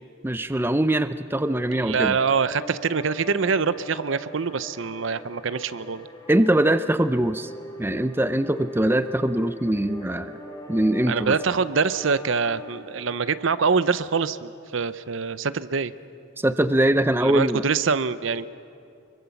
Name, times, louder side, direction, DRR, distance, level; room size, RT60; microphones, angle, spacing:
voice 1, 0.2-2.2 6.3-7.5 7.8-10.3 10.7-11.4 16.4-17.6, right 1 dB, 10° right, 11 dB, 0.5 m, -22 dB
sound 1, 1.3-14.7, equal, 20° left, 2.4 m, -41 dB
voice 2, 1.7-6.1 11.1-15.9 17.2-18.5, right 5 dB, 70° right, 15 dB, 0.6 m, -24 dB
25.5 x 23.0 x 7.1 m, 2.5 s
head